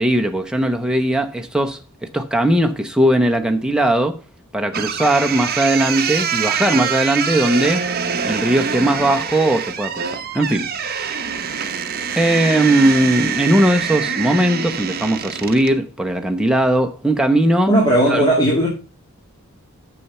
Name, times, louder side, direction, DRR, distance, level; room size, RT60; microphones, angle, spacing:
voice 1, 0.0-1.8 2.1-4.2 4.5-7.9 8.2-11.2 12.2-17.7 18.1-18.2, right 1 dB, 5° right, 0.9 m, -18 dB
sound 1, 4.7-15.8, right 7 dB, 45° right, 0.9 m, -25 dB
voice 2, 17.7-18.7, right 1 dB, 20° left, 2.4 m, -15 dB
9.2 x 6.9 x 5.6 m
head